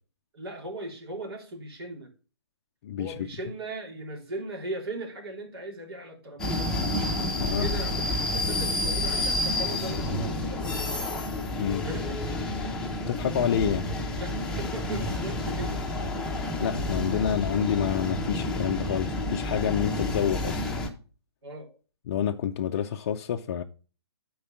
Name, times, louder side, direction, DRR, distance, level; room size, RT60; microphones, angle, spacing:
voice 1, 0.3-2.1 3.0-6.7 7.6-11.1 11.8-12.5 14.2-16.0 21.4-21.8, right 2 dB, 60° right, 3.5 m, -38 dB
voice 2, 2.8-3.1 7.4-7.7 11.6-11.8 13.1-13.9 15.9-16.0 16.6-20.8 22.1-23.6, left 9 dB, 35° left, 0.5 m, -28 dB
sound 1, 6.4-20.9, left 1 dB, 5° left, 0.9 m, -29 dB
9.1 x 4.7 x 5.8 m
hypercardioid pair, 155°, 15 cm